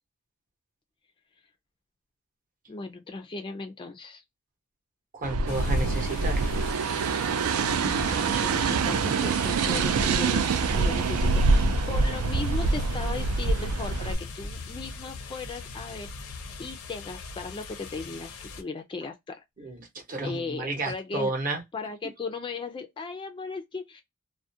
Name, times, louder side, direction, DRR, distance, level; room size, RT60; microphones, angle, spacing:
voice 1, 2.7-4.2 8.1-19.4 20.2-21.3 21.7-24.0, left 3 dB, 25° left, 0.3 m, -37 dB
voice 2, 5.1-6.4 19.6-21.6, right 2 dB, 40° right, 0.8 m, -32 dB
sound 1, 5.2-14.1, right 4 dB, 80° right, 0.4 m, -25 dB
sound 2, 5.5-18.6, left 3 dB, 90° left, 0.5 m, -39 dB
2.4 x 2.1 x 2.6 m
head